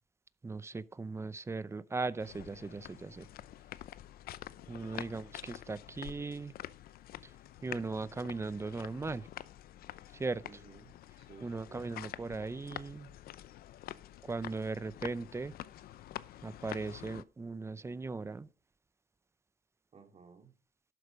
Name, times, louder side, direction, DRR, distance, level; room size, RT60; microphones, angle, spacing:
voice 1, 0.4-3.3 4.7-6.5 7.6-9.3 10.1-10.4 11.4-13.1 14.2-15.5 16.4-18.5, right 3 dB, 15° right, 0.6 m, -38 dB
sound 1, 2.2-17.2, left 13 dB, 60° left, 0.6 m, -48 dB
voice 2, 10.4-11.9 19.9-20.5, right 5 dB, 40° right, 2.7 m, -57 dB
12.0 x 8.1 x 5.1 m
cardioid pair, 110°, 17 cm